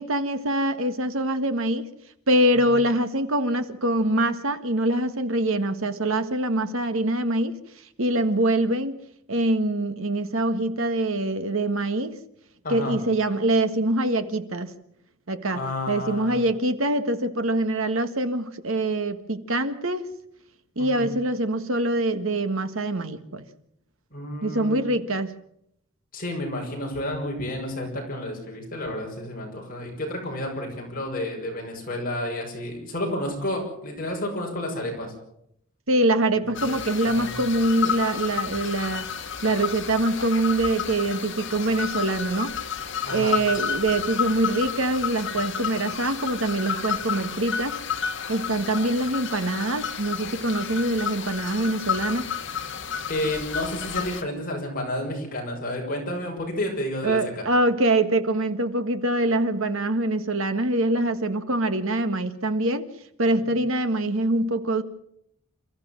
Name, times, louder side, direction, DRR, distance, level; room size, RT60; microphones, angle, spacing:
voice 1, 0.0-1.9 2.3-7.6 8.0-9.0 9.3-12.2 12.7-14.7 15.3-15.6 15.9-20.1 20.8-23.4 24.4-25.3 35.9-39.1 39.4-42.5 43.1-47.8 48.3-52.3 57.0-62.9 63.2-64.8, right 1 dB, 70° right, 1.7 m, -24 dB
voice 2, 12.6-13.0 15.5-16.4 20.8-21.1 24.1-24.9 26.1-35.1 36.5-36.8 37.0-37.3 43.0-43.4 53.1-57.5 63.4-63.5, left 1 dB, 40° left, 6.1 m, -31 dB
sound 1, 36.5-54.2, left 7 dB, 55° left, 2.2 m, -31 dB
28.5 x 14.5 x 7.5 m
head